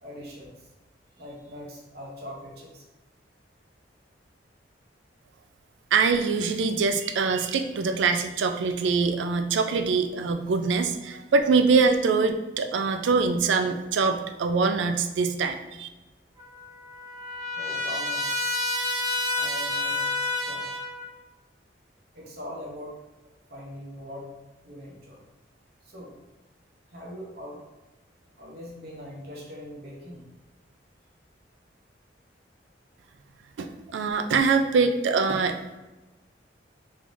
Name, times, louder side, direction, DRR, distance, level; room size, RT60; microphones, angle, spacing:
voice 1, 0.0-0.7 1.2-2.8 17.5-18.2 19.3-20.1 20.4-20.8 22.1-22.9 23.5-24.3 24.6-25.2 25.8-26.1 26.9-27.6 28.4-30.2, equal, 55° right, -3 dB, 0.8 m, -41 dB
voice 2, 5.9-15.9 33.6-35.8, right 4 dB, 85° right, 7 dB, 0.4 m, -24 dB
Trumpet, 16.4-21.1, left 2 dB, 20° right, 0.6 m, -29 dB
3.4 x 3.2 x 2.6 m, 1.1 s
head